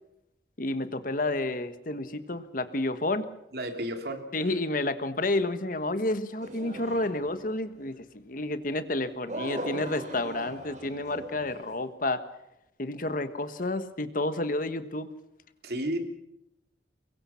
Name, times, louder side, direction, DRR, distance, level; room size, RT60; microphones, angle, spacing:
voice 1, 0.6-3.3 4.3-7.9 8.2-12.2 12.8-15.1, left 2 dB, 50° left, 11 dB, 1.4 m, -30 dB
voice 2, 3.5-4.3 15.6-16.0, right 1 dB, 60° right, 5 dB, 3.0 m, -32 dB
sound 1, 6.4-7.6 9.3-11.8, right 1 dB, 40° right, 5.7 m, -39 dB
24.0 x 22.5 x 5.8 m, 0.83 s
head